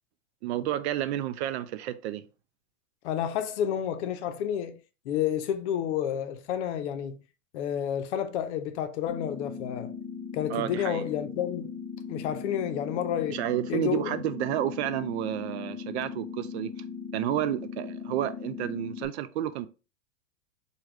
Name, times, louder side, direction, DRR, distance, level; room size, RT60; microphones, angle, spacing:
voice 1, 0.4-2.2 10.5-11.0 13.3-16.7 17.1-19.7, right 12 dB, 65° right, 0.5 m, -30 dB
voice 2, 3.0-4.8 5.0-7.2 7.5-9.9 10.3-11.7 12.1-13.4 13.7-14.2, left 9 dB, 65° left, 0.6 m, -30 dB
sound 1, 9.1-19.1, left 6 dB, 20° left, 0.5 m, -39 dB
3.4 x 2.3 x 3.0 m
hypercardioid pair, 110°, 37 cm